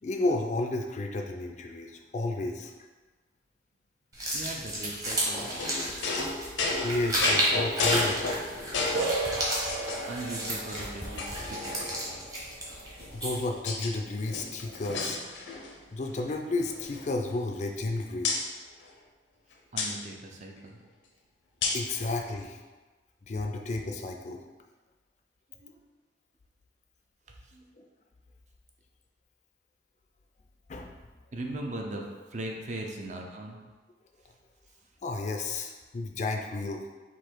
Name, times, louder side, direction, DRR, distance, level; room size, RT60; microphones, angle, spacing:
voice 1, 0.0-2.7 6.8-8.2 13.1-15.2 15.9-18.3 21.7-22.6 23.3-24.4 27.8-27.9 30.7-30.9 35.0-36.8, left 2 dB, 40° left, 3 dB, 0.3 m, -32 dB
sound 1, 4.1-13.5, right 1 dB, 20° right, 0.9 m, -32 dB
voice 2, 4.3-5.8 10.1-12.0 19.7-20.8 25.5-25.8 27.4-27.7 31.3-33.6, right 1 dB, 40° right, 1 dB, 0.5 m, -39 dB
sound 2, 5.6-9.2 9.7-10.3 10.7-10.8 11.2-12.2 13.0-13.9 14.2-15.8 16.0-16.3 16.6-17.9 18.2-18.5 19.8-19.9 21.6-21.9, left 3 dB, 90° left, 0.6 m, -32 dB
sound 3, 8.9-14.4, right 2 dB, 75° right, 0.7 m, -37 dB
4.0 x 2.8 x 4.5 m, 1.3 s
head